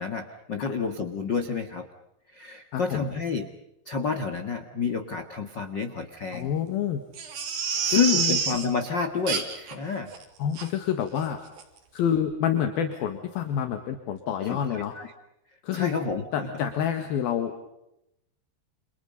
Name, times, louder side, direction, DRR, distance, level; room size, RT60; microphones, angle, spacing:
voice 1, 0.0-1.8 2.3-3.5 3.8-6.5 7.7-10.1 14.4-15.1 15.7-16.6, left 5 dB, 45° left, 7 dB, 1.4 m, -29 dB
voice 2, 2.7-3.1 6.3-7.0 7.9-8.4 10.4-11.4 11.9-14.9 15.6-16.0 16.3-17.5, left 9 dB, 70° left, 7 dB, 3.4 m, -28 dB
Crying sobbing, 7.2-8.7 9.3-9.7 10.1-10.2 10.6-10.7 11.2-11.3 11.6-11.7, right 6 dB, 80° right, 5.4 m, -28 dB
29.5 x 28.0 x 5.4 m, 0.86 s
omnidirectional pair, 4.7 m